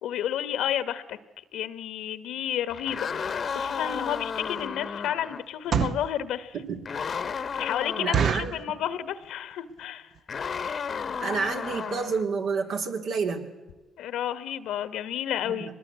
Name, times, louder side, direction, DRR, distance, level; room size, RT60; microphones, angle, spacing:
voice 1, 0.0-1.2 1.5-6.5 7.5-10.1 14.0-15.7, left 10 dB, 85° left, 13 dB, 1.3 m, -31 dB
sound 1, 2.7-5.4 6.8-8.3 10.3-12.2, left 6 dB, 50° left, 1.0 m, -33 dB
sound 2, 3.9-4.0 4.5-4.8 5.5-6.1 6.7-6.8 7.1-7.2 7.5-7.6 8.1-8.6 9.2-9.5 9.8-9.9 10.1-10.4 10.9-11.0 11.2-11.4 11.8-11.9 12.1-12.2, right 7 dB, 60° right, 0.7 m, -27 dB
voice 2, 8.0-8.5 11.2-13.5 15.4-15.7, right 5 dB, 75° right, 4 dB, 2.9 m, -29 dB
24.0 x 20.0 x 8.2 m, 1.1 s
cardioid pair, 90°, 0 cm